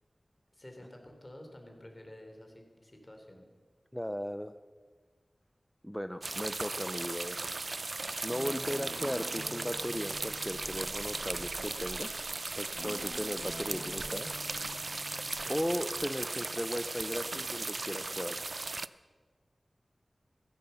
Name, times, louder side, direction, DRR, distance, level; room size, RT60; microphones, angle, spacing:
voice 1, 0.5-3.4 8.3-8.4 15.2-15.6, left 1 dB, 35° left, 3 dB, 3.3 m, -51 dB
voice 2, 3.9-4.5 5.8-7.6 8.2-12.2 12.6-14.3 15.5-18.8, equal, 5° left, 10 dB, 0.5 m, -37 dB
sound 1, 6.2-18.9, right 3 dB, 60° right, 0.4 m, -37 dB
Guitar, 8.3-12.1 12.7-17.5, left 1 dB, 80° left, 4.4 m, -49 dB
15.0 x 13.0 x 6.9 m, 1.5 s
wide cardioid pair, 60°, 0 cm